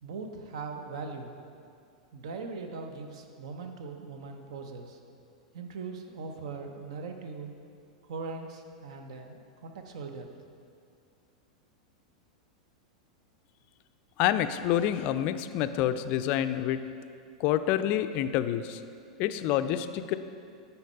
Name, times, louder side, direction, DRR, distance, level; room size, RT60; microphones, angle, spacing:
voice 1, 0.0-1.3 2.1-5.0 5.5-7.5 8.0-10.3, right 4 dB, 60° right, 5 dB, 0.8 m, -40 dB
voice 2, 14.2-16.8 17.4-18.8 19.2-20.2, left 11 dB, 45° left, 11 dB, 0.4 m, -27 dB
9.5 x 4.5 x 5.5 m, 2.4 s
figure-of-eight pair, 95°, 4 cm